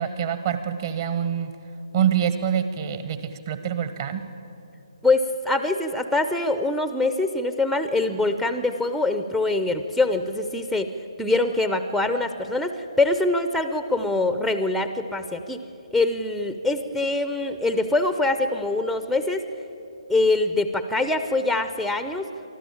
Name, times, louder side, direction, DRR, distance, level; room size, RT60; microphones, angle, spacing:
voice 1, 0.0-1.5 1.9-4.2, right 9 dB, 40° right, 10 dB, 1.4 m, -25 dB
voice 2, 5.0-10.9 11.2-15.6 15.9-19.4 20.1-22.3, left 2 dB, ahead, 9 dB, 0.6 m, -24 dB
24.0 x 13.5 x 8.6 m, 2.8 s
figure-of-eight pair, 140°, 3 cm